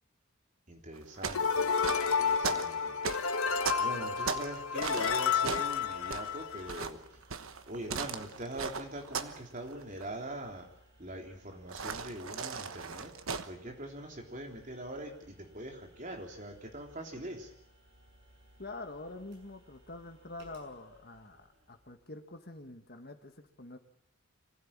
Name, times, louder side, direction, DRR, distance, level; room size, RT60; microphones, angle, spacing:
voice 1, 0.7-1.7 2.0-3.0 3.8-7.0 7.7-10.7 11.0-13.1 13.5-17.5, right 1 dB, 35° right, 2 dB, 3.6 m, -42 dB
sound 1, 0.9-4.6 4.8-9.4 9.7-10.0 11.7-13.5, right 5 dB, 75° right, 1.2 m, -38 dB
sound 2, 1.3-6.8, left 6 dB, 90° left, 1.4 m, -31 dB
sound 3, 3.5-21.8, right 1 dB, 55° right, 7.0 m, -62 dB
voice 2, 18.6-23.8, left 2 dB, 45° left, 7 dB, 1.8 m, -46 dB
25.5 x 15.5 x 8.9 m, 0.72 s
head